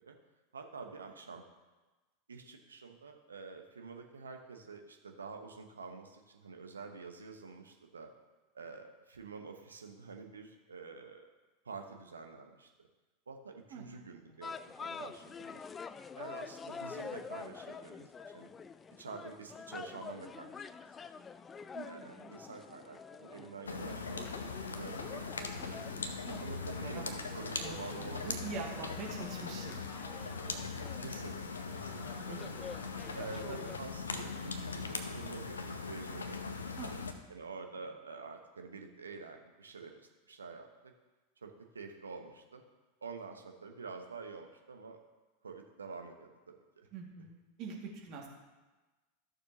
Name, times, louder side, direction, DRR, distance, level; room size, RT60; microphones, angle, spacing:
voice 1, 0.5-1.4 2.3-8.1 8.5-11.3 11.6-12.7 13.3-15.6 16.1-18.5 19.0-20.5 21.1-21.2 21.8-25.7 26.4-28.6 31.0-32.5 33.1-36.4 37.3-40.0 40.3-40.9 41.4-42.6 43.0-45.0 45.4-46.9, right 4 dB, 75° right, 4 dB, 1.0 m, -48 dB
sound 1, 14.4-33.8, left 5 dB, 20° left, 0.3 m, -47 dB
voice 2, 21.7-22.3 26.2-26.4 26.8-29.8 32.2-32.4 36.8-37.1 46.9-48.3, right 4 dB, 45° right, -1 dB, 2.1 m, -45 dB
sound 2, 23.7-37.1, left 4 dB, 75° left, 0.7 m, -40 dB
14.0 x 6.7 x 2.9 m, 1.2 s
figure-of-eight pair, 85°, 0 cm